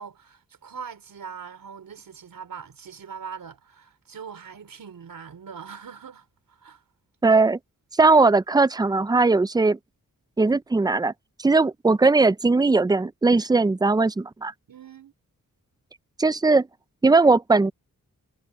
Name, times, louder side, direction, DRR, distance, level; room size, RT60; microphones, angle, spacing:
voice 1, 0.0-6.8 14.7-15.1, right 6 dB, 80° right, 4.1 m, -41 dB
voice 2, 7.2-7.6 8.0-9.8 10.4-11.1 11.4-14.5 16.2-16.7 17.0-17.7, right 3 dB, 10° right, 0.4 m, -19 dB
wide cardioid pair, 90°, 33 cm